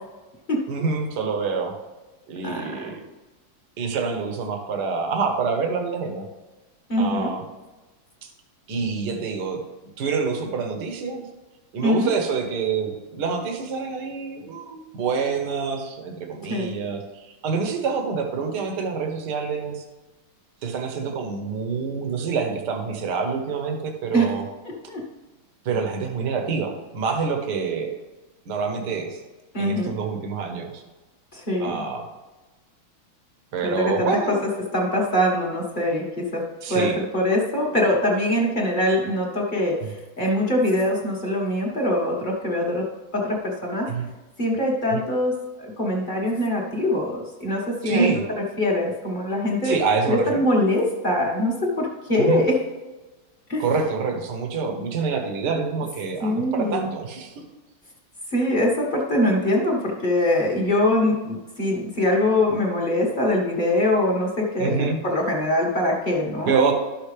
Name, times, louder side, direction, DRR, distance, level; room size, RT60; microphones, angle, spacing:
voice 1, 0.7-1.7 2.3-3.0 3.8-6.3 7.0-7.4 8.2-8.3 8.7-9.6 10.0-11.2 11.7-19.8 20.6-24.4 25.7-27.9 28.5-29.2 29.6-30.8 31.6-32.1 33.5-34.4 36.6-37.0 39.8-39.9 43.9-44.1 44.9-45.0 47.8-48.2 49.6-50.4 52.2-52.4 53.6-57.5 64.6-65.0 66.5-66.7, right 5 dB, 60° right, 4 dB, 1.6 m, -26 dB
voice 2, 6.9-7.3 11.8-12.1 16.5-16.8 24.1-24.3 24.9-25.0 29.5-29.9 31.3-31.8 33.6-34.1 34.7-36.4 36.7-42.9 43.1-43.9 44.4-48.1 48.6-49.8 50.1-52.6 53.5-53.6 56.2-56.9 58.3-66.5, left 1 dB, 25° left, -3 dB, 1.6 m, -23 dB
12.0 x 6.6 x 3.3 m, 1.2 s
omnidirectional pair, 2.2 m